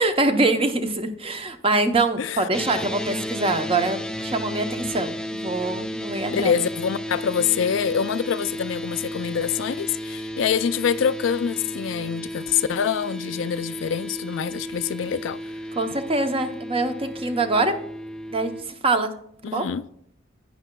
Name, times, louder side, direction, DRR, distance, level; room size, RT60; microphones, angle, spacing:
voice 1, 0.0-6.6 15.8-17.8 18.3-19.1 19.5-19.7, right 2 dB, 30° right, 0.7 m, -24 dB
sound 1, 2.5-18.6, equal, 5° left, 0.3 m, -33 dB
voice 2, 6.3-15.4 19.4-19.8, left 7 dB, 75° left, 0.4 m, -25 dB
11.0 x 9.3 x 2.3 m
head